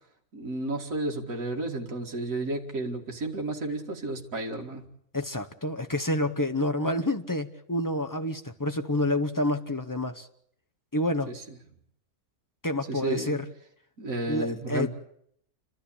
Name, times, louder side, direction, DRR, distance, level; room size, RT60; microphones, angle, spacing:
voice 1, 0.3-4.8 11.2-11.3 12.9-13.4 14.0-14.9, right 2 dB, 60° right, 2.4 m, -32 dB
voice 2, 5.1-10.3 10.9-11.3 12.6-13.5 14.3-14.9, left 1 dB, 20° left, 0.6 m, -28 dB
29.5 x 12.5 x 8.7 m
omnidirectional pair, 1.7 m